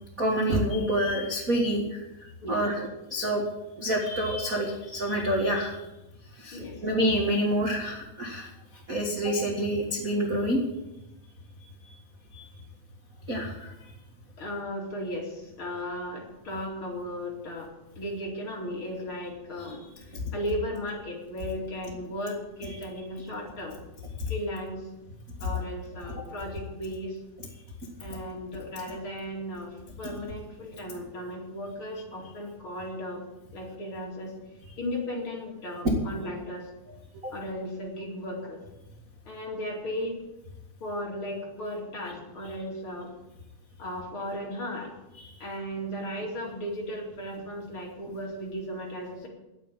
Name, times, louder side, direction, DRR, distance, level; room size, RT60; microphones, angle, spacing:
voice 1, 0.2-1.8 2.5-3.4 3.8-5.8 6.4-8.5 8.9-10.6 12.3-12.5 13.3-13.5 37.2-37.3 45.2-45.3, equal, 45° right, 0 dB, 1.1 m, -27 dB
voice 2, 2.4-2.9 6.5-6.8 14.4-17.7 18.0-19.8 20.3-23.8 24.3-24.8 25.4-27.2 28.0-33.2 33.5-34.3 34.8-36.7 37.3-38.6 39.3-40.2 40.8-43.1 43.8-44.9 45.4-49.3, equal, 35° left, -2 dB, 3.0 m, -36 dB
11.0 x 9.2 x 8.9 m, 0.95 s
omnidirectional pair, 4.5 m